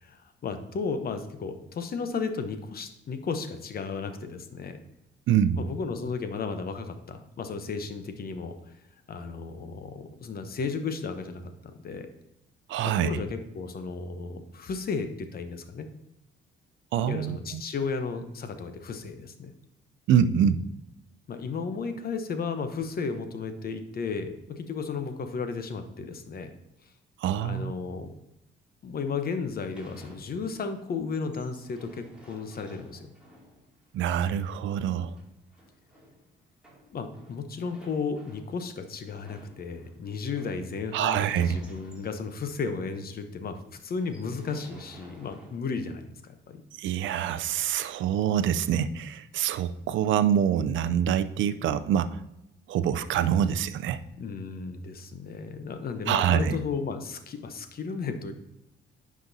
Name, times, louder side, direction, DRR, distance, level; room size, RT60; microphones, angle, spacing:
voice 1, 0.0-4.8 5.6-8.6 9.1-12.1 12.8-15.9 17.1-19.5 21.3-26.5 27.4-28.1 28.8-33.1 36.9-46.6 54.2-58.3, left 5 dB, 50° left, 8 dB, 0.9 m, -34 dB
voice 2, 5.3-5.6 12.7-13.1 16.9-17.6 20.1-20.6 27.2-27.7 33.9-35.1 40.9-41.6 46.8-52.2 52.7-54.0 56.1-56.6, right 9 dB, 75° right, 13 dB, 0.5 m, -25 dB
sound 1, 29.6-30.7 31.0-42.7 43.1-43.2 43.4-43.6 43.9-46.1 47.1-47.3, equal, 5° right, 2.6 m, -54 dB
9.7 x 5.1 x 2.7 m, 0.87 s
cardioid pair, 90°, 20 cm